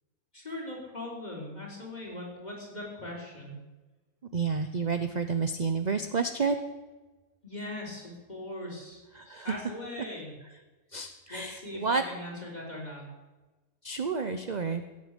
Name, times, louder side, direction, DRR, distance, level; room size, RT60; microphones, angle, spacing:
voice 1, 0.3-3.6 7.4-9.0 9.4-10.3 11.3-13.0, left 1 dB, 30° left, -2 dB, 4.2 m, -40 dB
voice 2, 4.3-6.6 9.2-9.5 10.9-12.0 13.8-14.8, right 5 dB, 40° right, 8 dB, 0.7 m, -30 dB
16.0 x 8.4 x 8.2 m, 1.2 s
omnidirectional pair, 1.5 m